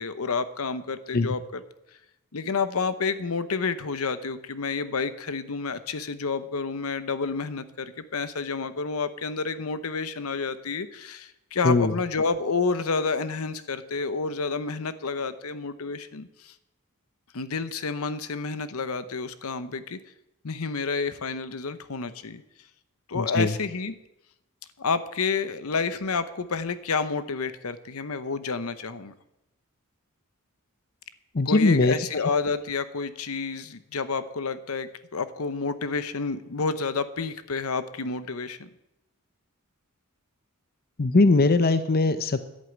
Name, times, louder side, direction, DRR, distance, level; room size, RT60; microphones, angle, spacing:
voice 1, 0.0-1.6 2.3-16.5 17.3-20.0 20.4-22.4 23.1-23.9 24.8-29.1 31.4-38.7, left 4 dB, 75° left, 13 dB, 0.9 m, -29 dB
voice 2, 23.1-23.5 31.3-32.0 41.0-42.4, left 3 dB, 45° left, 11 dB, 0.7 m, -20 dB
11.0 x 8.5 x 9.1 m, 0.87 s
head